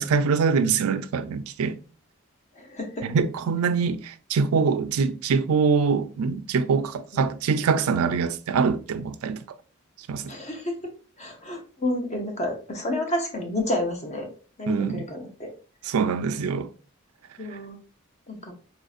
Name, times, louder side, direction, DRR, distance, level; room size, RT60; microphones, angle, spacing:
voice 1, 0.0-1.8 3.0-9.4 10.1-10.3 14.7-15.1 15.9-16.7, right 5 dB, 90° right, 0.4 m, -24 dB
voice 2, 2.5-3.1 7.1-7.2 10.3-10.9 11.2-14.3 14.6-15.5 17.4-17.8 18.3-18.5, left 1 dB, 30° left, 0.7 m, -30 dB
4.1 x 2.6 x 2.4 m
head